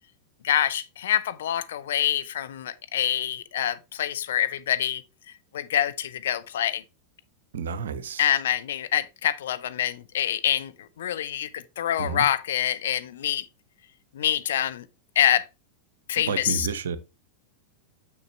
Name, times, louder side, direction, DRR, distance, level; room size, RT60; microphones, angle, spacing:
voice 1, 0.4-5.0 5.5-6.8 8.2-13.5 14.1-14.9 15.2-15.5 16.1-16.7, left 11 dB, 60° left, 0.6 m, -26 dB
voice 2, 7.5-8.3 12.0-12.3 16.2-17.0, right 6 dB, 65° right, 0.7 m, -30 dB
7.1 x 6.4 x 3.2 m
figure-of-eight pair, 90°, 0 cm